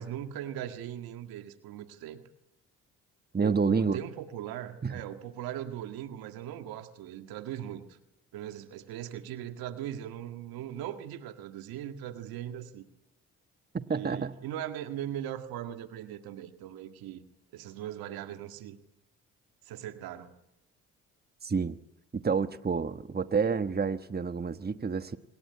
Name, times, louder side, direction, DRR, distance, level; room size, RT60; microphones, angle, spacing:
voice 1, 0.0-2.2 3.4-8.0 8.3-12.8 13.9-17.2 17.5-18.8 19.7-20.3, right 11 dB, 85° right, 7 dB, 1.9 m, -39 dB
voice 2, 3.3-4.0 4.8-5.0 13.7-14.4 21.4-21.8 22.1-25.2, right 5 dB, 25° right, 11 dB, 1.3 m, -29 dB
26.0 x 20.5 x 9.6 m, 0.88 s
supercardioid pair, 60°, 35 cm